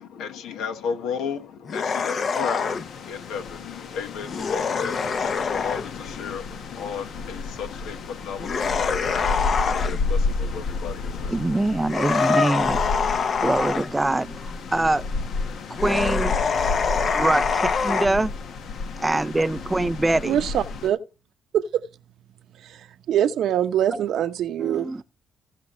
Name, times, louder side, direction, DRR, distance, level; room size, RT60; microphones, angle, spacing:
voice 1, 0.0-11.7, left 6 dB, 85° left, 1.2 m, -34 dB
sound 1, 1.7-2.9 4.2-5.9 8.4-10.0 11.9-13.9 15.8-18.1, left 5 dB, 50° left, 0.8 m, -25 dB
sound 2, 2.6-20.9, left 4 dB, 70° left, 1.2 m, -32 dB
voice 2, 11.3-15.1 15.7-16.4 16.8-18.3 19.0-20.4 23.9-24.0 24.6-25.0, right 2 dB, 15° right, 0.4 m, -24 dB
voice 3, 20.2-21.0 21.5-21.8 22.6-25.0, right 10 dB, 75° right, 0.8 m, -24 dB
16.5 x 5.9 x 3.1 m
cardioid pair, 90°, 0 cm